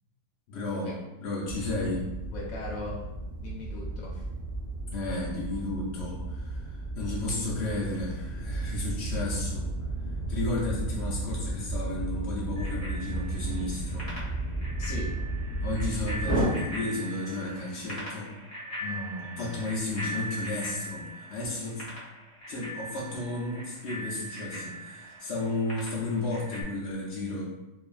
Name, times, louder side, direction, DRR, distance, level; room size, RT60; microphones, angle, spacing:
voice 1, 0.5-0.9 1.2-2.1 4.9-9.7 10.3-14.1 15.6-18.3 19.4-21.9 22.5-27.4, left 2 dB, 90° left, -4 dB, 0.5 m, -33 dB
sound 1, 1.5-16.4, right 2 dB, 20° right, 1.0 m, -33 dB
voice 2, 2.3-3.0 3.4-4.2 14.8-15.1 18.8-19.6, left 2 dB, 70° left, -4 dB, 1.0 m, -38 dB
Bicycle bell, 12.6-26.6, right 1 dB, 35° left, 0.6 m, -41 dB
2.7 x 2.4 x 2.3 m, 1.0 s
omnidirectional pair, 1.7 m